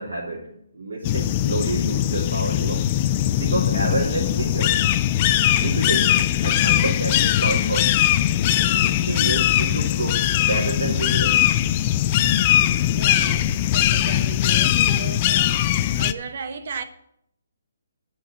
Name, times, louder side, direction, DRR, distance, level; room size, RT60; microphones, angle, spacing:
voice 1, 0.0-2.8 3.3-4.8 5.6-7.9 8.8-11.5, right 2 dB, 75° right, 3.5 m, -29 dB
sound 1, 1.0-16.1, left 12 dB, 30° left, 0.5 m, -20 dB
voice 2, 12.9-16.8, right 5 dB, 55° right, 1.3 m, -35 dB
10.5 x 6.2 x 8.4 m
figure-of-eight pair, 145°, 0 cm